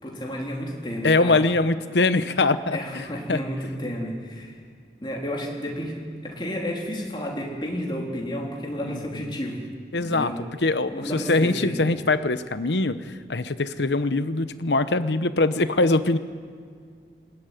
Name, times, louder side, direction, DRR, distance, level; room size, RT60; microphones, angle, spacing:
voice 1, 0.0-1.4 2.7-4.5 5.0-6.0 6.2-9.6 10.0-10.3 10.9-11.8, equal, 25° left, -2 dB, 3.7 m, -31 dB
voice 2, 1.0-3.0 3.3-3.4 8.8-9.4 9.9-10.3 10.6-16.2, left 3 dB, 80° left, 12 dB, 1.0 m, -23 dB
21.0 x 17.0 x 9.3 m, 2.2 s
head